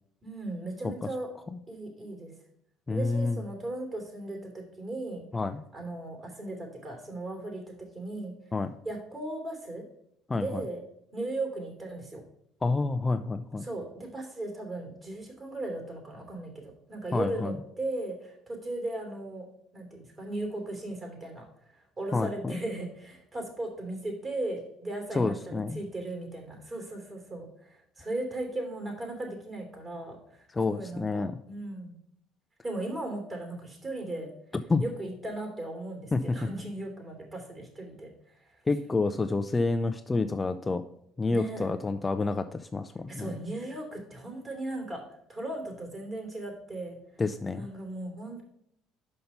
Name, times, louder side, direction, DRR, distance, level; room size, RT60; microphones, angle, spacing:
voice 1, 0.2-1.3 1.7-2.3 2.9-5.2 5.7-8.3 8.8-9.8 10.3-10.8 11.1-12.2 13.6-19.4 19.7-31.9 32.6-34.3 34.8-38.1 38.4-38.6 41.3-41.7 43.1-45.0 45.3-47.0 47.6-48.4, right 2 dB, 30° right, 2 dB, 2.8 m, -37 dB
voice 2, 2.9-3.4 5.3-5.6 8.5-8.7 10.3-10.6 12.6-13.6 17.1-17.5 22.1-22.5 25.2-25.8 30.5-31.3 34.7-34.8 36.1-36.2 38.7-40.8 41.2-43.4 47.2-47.7, left 3 dB, 20° left, 9 dB, 0.4 m, -28 dB
5.8 x 5.4 x 5.4 m, 0.73 s
supercardioid pair, 90°, 0 cm